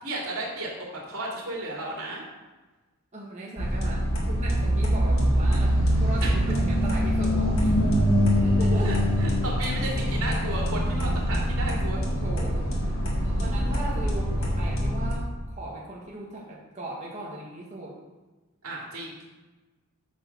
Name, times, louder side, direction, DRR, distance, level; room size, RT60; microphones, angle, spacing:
voice 1, 0.0-2.2 6.2-6.3 8.8-12.0 18.6-19.2, right 2 dB, 80° right, -3 dB, 2.7 m, -33 dB
voice 2, 3.1-7.8 8.4-8.9 9.2-9.3 10.9-11.1 12.2-17.9, right 1 dB, 30° right, -4 dB, 1.3 m, -38 dB
sound 1, 3.6-15.1, equal, 65° left, 2.0 m, -24 dB
8.7 x 4.7 x 5.9 m, 1.2 s
head